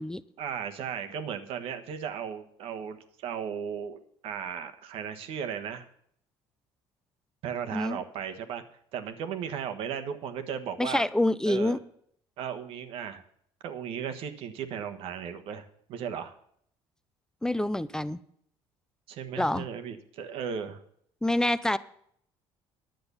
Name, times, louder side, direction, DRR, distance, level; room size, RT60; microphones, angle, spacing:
voice 1, 0.4-5.9 7.4-8.6 8.9-11.0 11.4-11.8 12.4-13.2 13.6-16.3 19.1-20.8, right 8 dB, 70° right, 8 dB, 1.4 m, -36 dB
voice 2, 10.8-11.8 17.4-18.2 19.4-19.7 21.2-21.8, left 1 dB, 5° left, 15 dB, 0.5 m, -26 dB
10.5 x 7.9 x 6.9 m, 0.66 s
cardioid pair, 115°, 10 cm